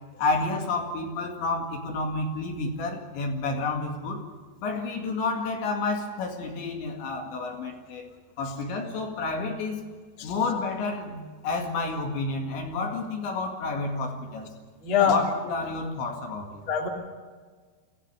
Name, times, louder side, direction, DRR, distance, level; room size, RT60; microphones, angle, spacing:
voice 1, 0.2-4.3 4.6-8.1 8.4-9.8 10.2-14.5 15.1-16.6, left 3 dB, 70° left, 2 dB, 4.5 m, -30 dB
voice 2, 14.8-15.2 16.7-16.9, left 8 dB, 30° left, 1 dB, 3.3 m, -23 dB
27.0 x 16.5 x 6.9 m, 1.5 s
omnidirectional pair, 5.6 m